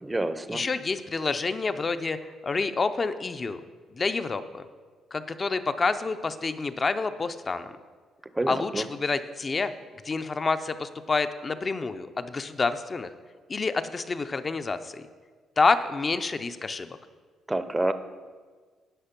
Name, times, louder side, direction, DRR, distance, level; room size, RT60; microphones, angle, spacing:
voice 1, 0.0-0.6 8.3-8.8 17.5-17.9, right 2 dB, 15° right, 11 dB, 0.6 m, -28 dB
voice 2, 0.5-3.6 3.9-4.7 5.1-7.7 8.5-9.7 10.0-13.1 13.5-15.0 15.6-17.0, left 4 dB, 35° left, 10 dB, 0.5 m, -28 dB
10.0 x 5.1 x 5.9 m, 1.5 s
cardioid pair, 90°, 0 cm